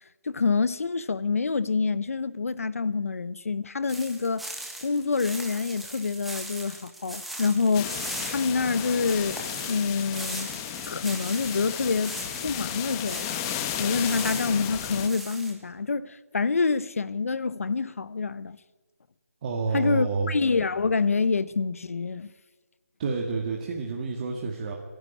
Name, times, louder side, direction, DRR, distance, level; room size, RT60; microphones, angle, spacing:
voice 1, 0.2-4.5 4.8-10.5 10.9-13.3 13.8-18.6 19.7-22.3, left 4 dB, 60° left, 1.0 m, -27 dB
sound 1, 3.9-13.6 13.9-15.5, right 1 dB, ahead, 1.5 m, -39 dB
sound 2, 7.7-15.1, left 9 dB, 15° left, 1.1 m, -34 dB
voice 2, 19.4-20.3 23.0-24.7, right 4 dB, 30° right, 2.1 m, -29 dB
25.5 x 11.5 x 9.7 m
figure-of-eight pair, 160°, 8 cm